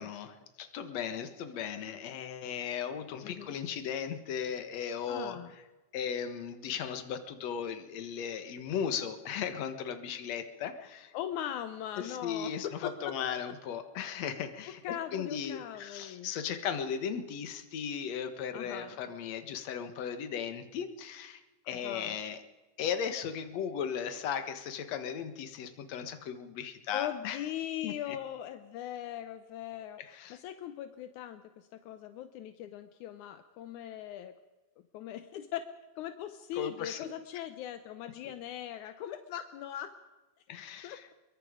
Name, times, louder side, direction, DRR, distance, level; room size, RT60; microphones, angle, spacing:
voice 1, 0.0-5.4 5.9-11.1 12.0-14.8 15.1-22.4 22.8-27.4 27.8-28.2 30.0-30.4 36.5-37.1 40.5-41.1, left 7 dB, 65° left, 9 dB, 2.6 m, -37 dB
voice 2, 3.2-3.6 5.1-5.5 11.1-13.1 14.7-16.3 18.5-19.0 21.6-22.2 26.9-30.0 30.3-34.3 34.9-35.7 36.0-39.9 40.8-41.1, left 11 dB, 80° left, 9 dB, 2.3 m, -40 dB
24.0 x 22.5 x 5.1 m, 1.2 s
omnidirectional pair, 3.4 m